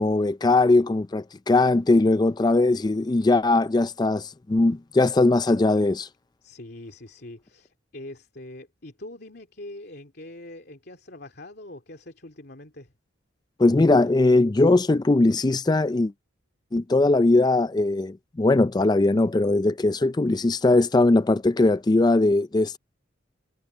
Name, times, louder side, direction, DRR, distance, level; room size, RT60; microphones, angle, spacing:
voice 1, 0.0-6.1 13.6-16.1 16.7-22.8, left 2 dB, 20° left, 0.4 m, -20 dB
voice 2, 6.4-12.9, left 1 dB, 55° left, 2.8 m, -43 dB
head